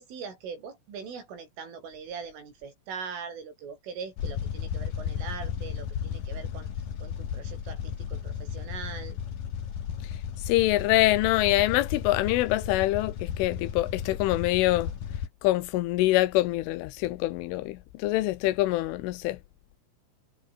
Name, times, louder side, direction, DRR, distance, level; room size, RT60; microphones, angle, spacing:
voice 1, 0.0-6.7 7.0-9.2, right 6 dB, 80° right, 8.7 m, -41 dB
sound 1, 4.2-15.3, left 8 dB, 50° left, 3.8 m, -34 dB
voice 2, 10.5-14.9 15.4-19.4, left 17 dB, 80° left, 3.5 m, -25 dB
omnidirectional pair, 5.6 m